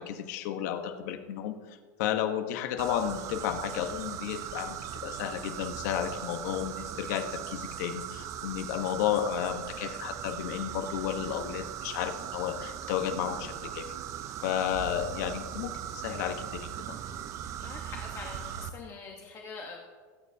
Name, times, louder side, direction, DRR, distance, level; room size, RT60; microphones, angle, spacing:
voice 1, 0.0-1.5 2.0-13.9 14.4-17.0, left 10 dB, 60° left, 7 dB, 1.2 m, -32 dB
sound 1, 2.8-18.7, right 10 dB, 30° right, 0.6 m, -39 dB
voice 2, 17.6-19.8, left 4 dB, 30° left, 0 dB, 1.2 m, -44 dB
23.0 x 9.1 x 2.8 m, 1.5 s
supercardioid pair, 160°, 10 cm